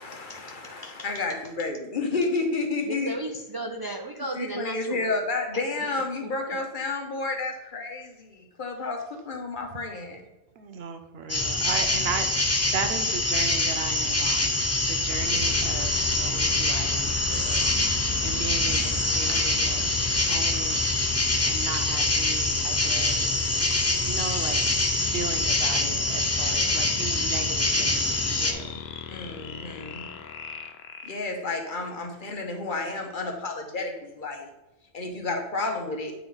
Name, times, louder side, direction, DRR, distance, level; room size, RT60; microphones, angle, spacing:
voice 1, 0.0-3.1 4.3-10.2 29.1-30.1 31.1-34.5 34.9-36.1, left 3 dB, 55° left, 2 dB, 1.1 m, -31 dB
voice 2, 2.8-5.3 5.5-5.9 6.2-6.3, right 2 dB, 35° right, 3 dB, 0.4 m, -35 dB
voice 3, 10.6-17.7 18.2-19.9 20.3-23.4 24.0-28.8, right 5 dB, 75° right, 7 dB, 0.9 m, -36 dB
sound 1, 11.3-28.5, left 2 dB, 20° left, 0.5 m, -25 dB
sound 2, 15.2-31.7, left 6 dB, 75° left, 0.8 m, -36 dB
8.9 x 3.5 x 3.9 m, 0.98 s
omnidirectional pair, 1.1 m